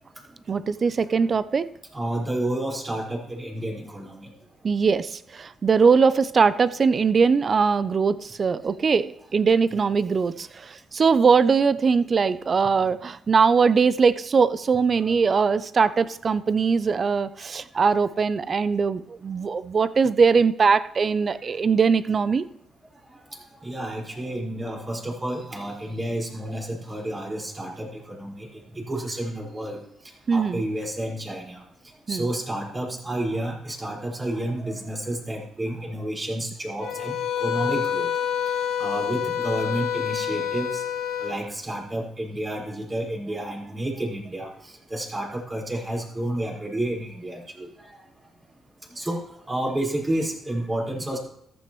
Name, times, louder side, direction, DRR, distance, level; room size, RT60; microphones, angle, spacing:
voice 1, 0.5-1.7 4.6-10.5 10.9-22.5 30.3-30.6 32.1-32.3, right 5 dB, 40° right, 15 dB, 0.6 m, -21 dB
voice 2, 1.9-4.3 12.7-12.9 14.9-15.3 15.8-15.9 23.1-29.8 30.3-31.6 32.1-38.1 38.8-40.8 41.2-47.9 48.9-49.2 49.5-51.2, right 1 dB, 25° right, -3 dB, 5.1 m, -30 dB
sound 1, 36.8-41.4, left 8 dB, 80° left, 1.5 m, -27 dB
14.5 x 13.0 x 3.2 m, 0.74 s
cardioid pair, 90°, 0 cm